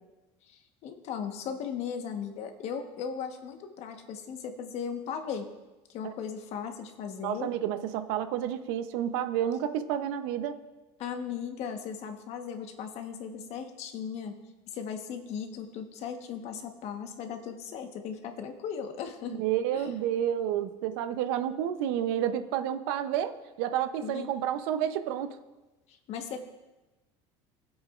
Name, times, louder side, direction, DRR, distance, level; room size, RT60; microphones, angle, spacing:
voice 1, 0.5-5.5 5.9-7.5 11.0-14.4 14.7-19.4 19.7-19.9 24.0-24.3 25.9-26.5, left 7 dB, 55° left, 5 dB, 1.2 m, -37 dB
voice 2, 7.2-10.6 19.4-25.4, right 10 dB, 85° right, 10 dB, 0.7 m, -30 dB
18.5 x 8.0 x 2.5 m, 1.1 s
cardioid pair, 120°, 13 cm